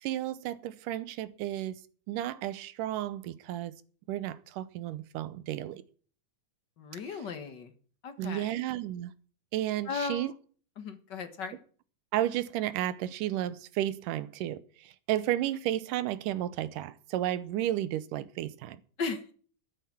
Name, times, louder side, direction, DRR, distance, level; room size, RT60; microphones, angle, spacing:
voice 1, 0.0-1.8 2.1-3.8 4.1-5.8 8.2-9.1 9.5-10.3 12.1-18.8, right 13 dB, 80° right, 2.3 m, -33 dB
voice 2, 6.8-7.7 8.0-8.5 9.8-10.3 10.8-11.6 19.0-19.3, left 5 dB, 50° left, 1.4 m, -36 dB
13.0 x 9.8 x 6.1 m
omnidirectional pair, 3.8 m